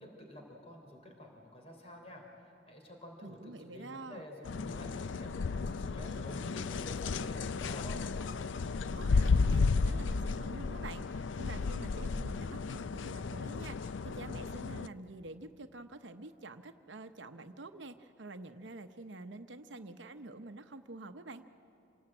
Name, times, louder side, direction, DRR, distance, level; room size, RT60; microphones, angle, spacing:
voice 1, 0.0-2.2 2.7-8.0, left 1 dB, 35° left, 2 dB, 3.4 m, -49 dB
voice 2, 3.2-4.3 8.9-21.4, right 2 dB, 75° right, 8 dB, 0.9 m, -47 dB
sound 1, 4.5-14.9, left 4 dB, 85° left, 0.5 m, -33 dB
27.5 x 18.5 x 8.8 m, 2.7 s
head